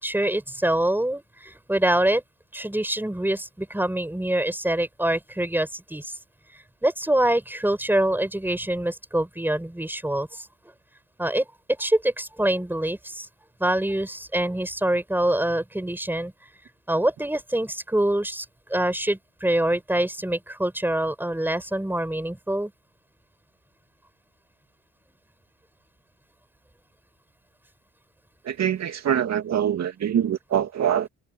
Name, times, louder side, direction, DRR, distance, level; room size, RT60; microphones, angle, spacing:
voice 1, 0.0-2.2 2.5-6.1 6.8-10.5 11.2-11.5 11.8-13.3 13.6-16.3 16.9-22.7, right 1 dB, 5° right, 7.0 m, -25 dB
voice 2, 28.4-31.1, right 9 dB, 60° right, 2.4 m, -24 dB
cardioid pair, 90°, 30 cm